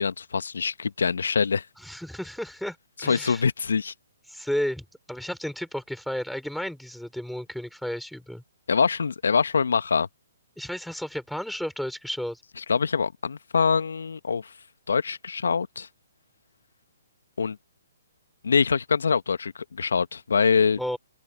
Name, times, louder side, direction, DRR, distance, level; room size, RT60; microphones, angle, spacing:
voice 1, 0.0-1.6 3.0-3.9 8.7-10.1 12.7-14.5 14.9-15.9 17.4-17.6 18.4-20.8, left 5 dB, 75° left, 1.4 m, -24 dB
voice 2, 1.8-2.8 3.0-3.5 4.3-8.4 10.6-12.4 20.8-21.0, equal, ahead, 5.6 m, -32 dB
open air
hypercardioid pair, 135°, 0 cm